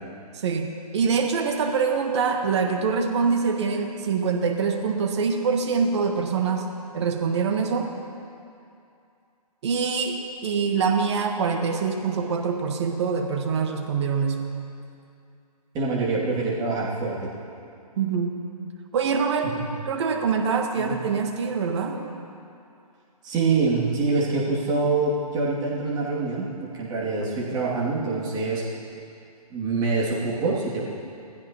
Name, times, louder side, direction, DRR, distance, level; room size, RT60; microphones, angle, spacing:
voice 1, 0.3-6.7 6.9-7.9 9.6-14.5 18.0-18.4 18.9-19.6 19.9-22.0, right 5 dB, 45° right, 4 dB, 1.5 m, -24 dB
voice 2, 15.7-17.3 20.8-20.9 23.2-26.5 26.7-28.6 29.5-30.9, right 3 dB, 20° right, -6 dB, 2.7 m, -25 dB
20.5 x 15.0 x 3.0 m, 2.6 s
figure-of-eight pair, 135°, 20 cm